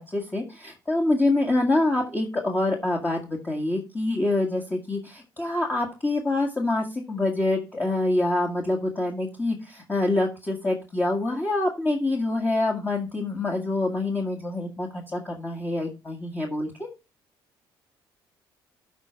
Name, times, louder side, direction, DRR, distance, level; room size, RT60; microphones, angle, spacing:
voice 1, 0.1-16.9, left 2 dB, 20° left, 0 dB, 1.8 m, -26 dB
12.5 x 4.3 x 4.6 m, 0.31 s
supercardioid pair, 65°, 10 cm